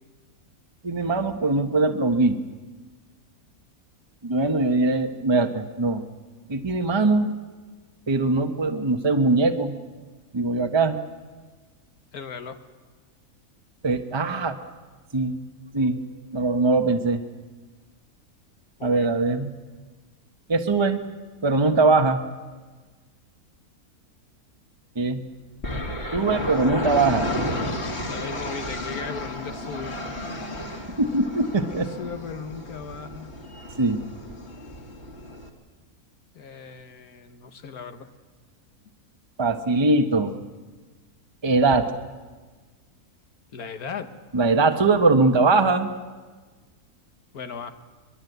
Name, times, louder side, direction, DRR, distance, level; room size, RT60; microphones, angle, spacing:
voice 1, 0.8-2.4 4.2-6.0 6.5-7.3 8.1-9.8 10.3-11.0 13.8-14.6 15.1-15.4 15.7-16.0 16.3-17.2 18.8-19.5 20.5-21.0 21.4-22.2 25.0-25.2 26.1-27.3 31.0-31.9 33.8-34.0 39.4-40.3 41.4-41.9 44.3-45.9, right 3 dB, 20° right, 6 dB, 0.9 m, -21 dB
voice 2, 12.1-12.6 18.8-19.1 28.1-30.0 31.7-33.4 36.3-38.1 43.5-44.1 47.3-47.7, left 5 dB, 90° left, 8 dB, 1.8 m, -37 dB
sound 1, 25.6-35.5, left 1 dB, 45° left, 2.4 m, -32 dB
22.5 x 22.0 x 8.0 m, 1.4 s
omnidirectional pair, 1.5 m